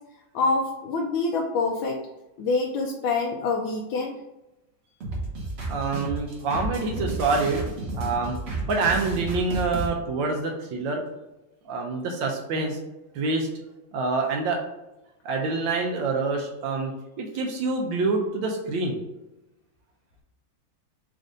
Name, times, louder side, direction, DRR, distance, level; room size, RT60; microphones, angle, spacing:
voice 1, 0.3-2.0 2.4-4.2, left 3 dB, 85° left, -1 dB, 1.4 m, -26 dB
sound 1, 5.0-9.9, right 2 dB, 40° right, 1.1 m, -32 dB
voice 2, 5.7-7.6 7.9-8.4 8.7-11.0 11.7-12.8 13.1-13.5 13.9-14.6 15.2-16.9 17.2-19.0, right 3 dB, 80° right, 1 dB, 1.4 m, -26 dB
4.3 x 2.6 x 4.8 m, 1.0 s
omnidirectional pair, 2.1 m